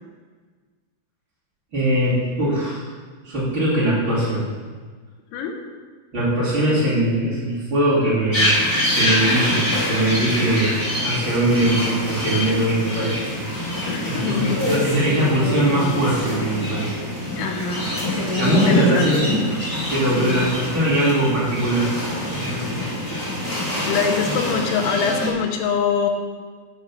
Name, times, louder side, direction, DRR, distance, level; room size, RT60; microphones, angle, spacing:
voice 1, 1.7-2.9 3.2-4.5 6.1-8.6 8.9-10.7 11.0-13.3 14.0-16.9 18.4-19.3 19.9-22.8 23.1-23.2 24.2-24.3, right 1 dB, 30° right, -10 dB, 3.1 m, -21 dB
sound 1, 8.3-25.3, left 1 dB, 25° left, 2.8 m, -25 dB
voice 2, 13.9-14.6 17.4-18.0 18.5-19.1 20.1-20.4 23.8-26.1, left 6 dB, 90° left, 3 dB, 3.3 m, -24 dB
8.9 x 7.4 x 5.6 m, 1.5 s
omnidirectional pair, 5.5 m